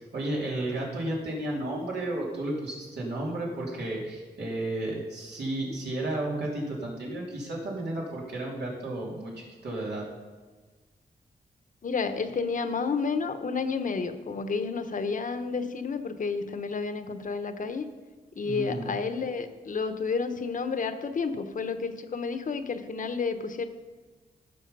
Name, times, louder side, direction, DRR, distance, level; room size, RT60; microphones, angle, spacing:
voice 1, 0.0-10.0 18.4-18.9, right 1 dB, 80° right, -4 dB, 3.0 m, -33 dB
voice 2, 11.8-17.9 18.4-23.7, left 4 dB, 50° left, 8 dB, 0.9 m, -30 dB
15.0 x 6.2 x 5.5 m, 1.3 s
wide cardioid pair, 125°, 17 cm